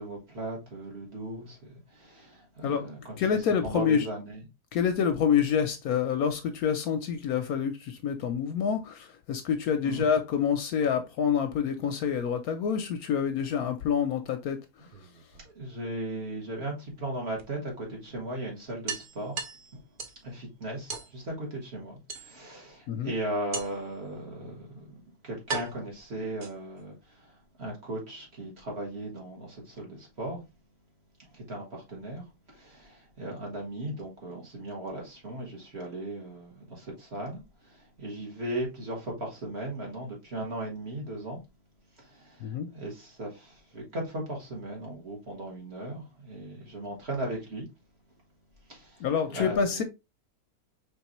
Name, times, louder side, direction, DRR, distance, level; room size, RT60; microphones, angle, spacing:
voice 1, 0.0-3.0 3.6-4.4 9.8-10.1 15.5-19.4 20.2-26.9 27.6-30.4 31.3-41.4 42.1-47.6 48.7-49.0 49.3-49.8, right 1 dB, 40° right, 1.6 m, -37 dB
voice 2, 3.2-4.1 4.7-14.9 22.9-23.1 42.4-42.7 49.0-49.8, left 7 dB, 70° left, 1.0 m, -27 dB
sound 1, 14.7-15.9 17.4-17.5 17.9-18.0 18.3-18.4 18.9-20.3 20.9-21.1 22.1-22.6 23.5-24.0 24.8-24.9 25.5-26.8, right 4 dB, 55° right, 0.5 m, -38 dB
4.5 x 3.4 x 3.0 m
omnidirectional pair, 1.8 m